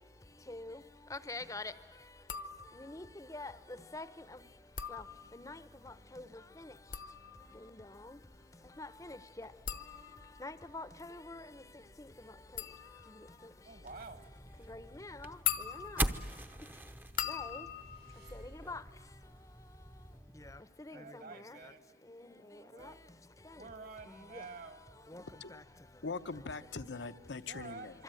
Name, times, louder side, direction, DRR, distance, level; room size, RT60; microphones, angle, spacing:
voice 1, 0.5-0.8 1.1-1.7 2.8-3.5 3.9-4.1 4.9-5.0 5.3-5.6 5.9-6.3 6.6-6.7 7.8-8.2 8.8-9.5 10.4-11.6 14.7-15.4 15.7-16.0 17.3-17.7 18.3-18.8 20.5-21.6 22.8-22.9 24.3-24.4 25.1-25.2 25.5-25.6, left 2 dB, 15° left, 14 dB, 0.8 m, -45 dB
sound 1, 2.2-3.0 4.6-5.7 6.6-19.4 19.6-20.2, left 9 dB, 45° left, 0.9 m, -43 dB
voice 2, 13.6-14.3 20.9-23.0 23.5-25.3 27.4-28.0, right 3 dB, 50° right, 10 dB, 1.7 m, -50 dB
sound 2, 13.9-20.6, right 1 dB, 10° right, 0.8 m, -42 dB
sound 3, 17.5-19.2, right 1 dB, 70° right, 6.1 m, -57 dB
voice 3, 26.0-28.0, left 4 dB, 75° left, 13 dB, 0.9 m, -42 dB
26.0 x 24.5 x 9.0 m, 1.5 s
head